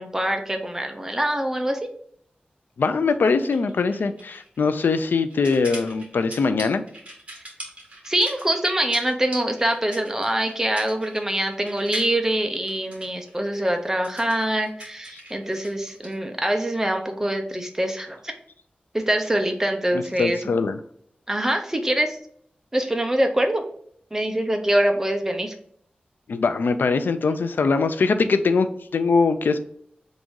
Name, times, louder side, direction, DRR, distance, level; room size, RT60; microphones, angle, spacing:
voice 1, 0.0-1.8 8.1-18.3 18.9-20.4 21.3-22.2 22.7-23.6 24.1-25.5, right 1 dB, 15° right, 4 dB, 0.6 m, -24 dB
voice 2, 2.8-6.8 19.9-20.8 26.3-29.6, left 4 dB, 85° left, 10 dB, 0.4 m, -22 dB
sound 1, 3.4-16.1, right 1 dB, 40° right, 1.7 m, -41 dB
3.7 x 2.6 x 4.5 m, 0.66 s
wide cardioid pair, 95°, 3 cm